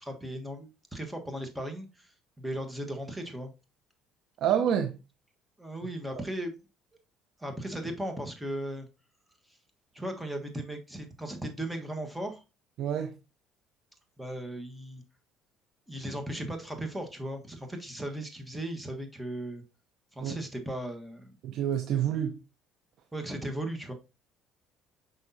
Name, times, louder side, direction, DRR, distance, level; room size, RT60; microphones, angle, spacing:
voice 1, 0.0-3.5 5.6-6.5 7.4-8.9 9.5-9.6 9.9-12.4 14.2-15.0 15.9-19.6 20.1-21.4 23.1-23.9, right 1 dB, 5° right, 1.4 m, -37 dB
voice 2, 4.4-5.0 12.8-13.1 20.2-20.3 21.4-22.4, right 9 dB, 65° right, 0.7 m, -27 dB
6.3 x 5.4 x 2.8 m
supercardioid pair, 90°, 0 cm